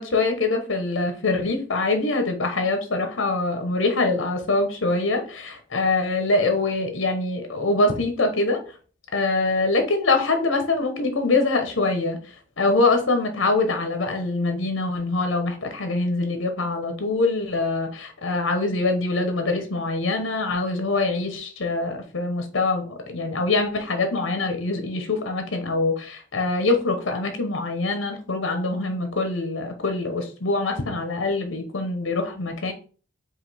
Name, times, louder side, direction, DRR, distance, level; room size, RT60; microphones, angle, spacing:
voice 1, 0.0-8.6 9.1-12.2 12.6-32.7, left 3 dB, 75° left, 6 dB, 0.9 m, -24 dB
5.0 x 2.5 x 4.2 m, 0.38 s
head